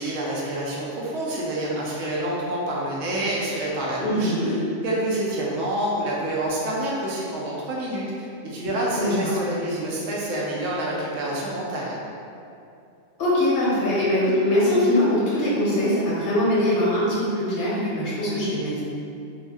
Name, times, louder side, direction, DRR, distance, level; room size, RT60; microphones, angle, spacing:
voice 1, 0.0-4.6 4.8-12.0, right 1 dB, 90° right, -4 dB, 1.0 m, -27 dB
voice 2, 4.0-4.6 9.0-9.4 13.2-18.8, left 1 dB, 60° left, -8 dB, 0.8 m, -22 dB
2.6 x 2.0 x 3.3 m, 2.6 s
omnidirectional pair, 1.3 m